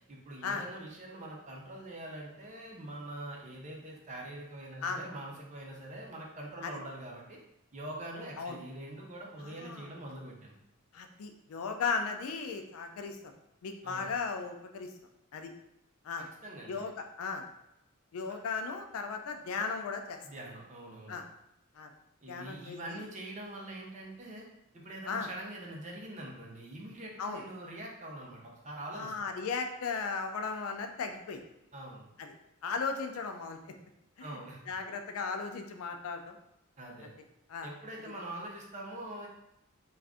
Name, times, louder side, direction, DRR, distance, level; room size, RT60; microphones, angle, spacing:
voice 1, 0.1-7.4 7.7-10.5 13.8-14.1 16.2-16.8 20.2-21.2 22.2-24.5 24.7-29.1 31.7-32.1 34.2-34.6 36.8-37.1 37.6-39.3, right 1 dB, 35° right, -1 dB, 0.6 m, -44 dB
voice 2, 9.4-9.9 10.9-13.3 13.6-14.9 15.3-15.5 16.0-16.3 16.7-17.5 18.1-20.2 21.1-21.2 21.7-21.9 22.3-23.0 25.1-25.3 27.2-27.4 28.9-31.4 32.2-32.3 32.6-33.7 34.2-34.3 34.7-36.4 37.5-37.7 38.0-38.1, left 5 dB, 75° left, 5 dB, 0.4 m, -36 dB
2.5 x 2.4 x 3.4 m, 0.84 s
head